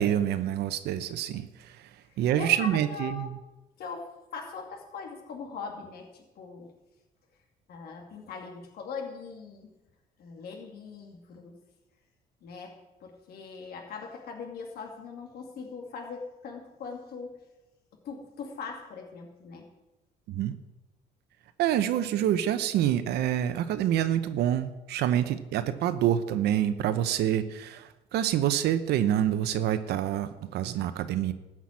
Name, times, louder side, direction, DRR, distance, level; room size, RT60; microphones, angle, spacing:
voice 1, 0.0-1.9 2.2-3.4 20.3-20.5 21.6-31.3, right 11 dB, 80° right, 11 dB, 0.9 m, -27 dB
voice 2, 2.1-3.3 3.8-6.7 7.7-9.7 10.2-11.6 12.4-17.4 18.0-19.7, left 5 dB, 65° left, 1 dB, 2.6 m, -41 dB
13.5 x 6.1 x 8.6 m, 1.0 s
cardioid pair, 110°, 17 cm